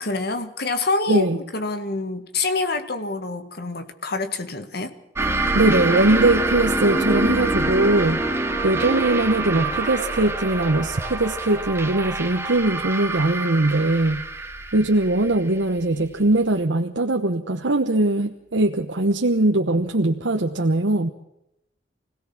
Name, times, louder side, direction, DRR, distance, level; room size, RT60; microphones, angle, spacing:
voice 1, 0.0-4.9 6.9-7.4, left 3 dB, 55° left, 9 dB, 1.8 m, -27 dB
sound 1, 5.2-16.4, right 2 dB, 15° right, 1.4 m, -26 dB
voice 2, 5.5-8.2 8.6-14.2 14.7-21.1, right 2 dB, 75° right, 4 dB, 1.1 m, -21 dB
25.5 x 17.5 x 6.1 m, 0.85 s
head